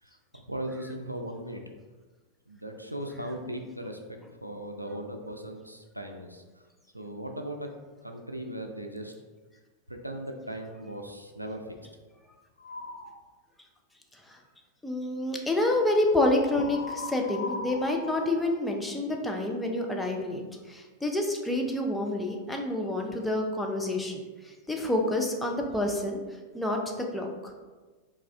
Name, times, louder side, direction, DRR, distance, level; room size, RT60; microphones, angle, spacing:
voice 1, 0.0-1.6 2.5-6.7 6.9-7.7 8.0-9.1 9.9-11.8, right 1 dB, 90° right, 4 dB, 0.4 m, -38 dB
sound 1, 12.6-13.2 16.5-19.2, left 3 dB, 70° left, 0.4 m, -39 dB
voice 2, 14.8-20.4 20.7-26.2 26.5-27.5, left 1 dB, 5° left, 1 dB, 0.5 m, -28 dB
4.8 x 2.4 x 3.2 m, 1.3 s
figure-of-eight pair, 90°, 0 cm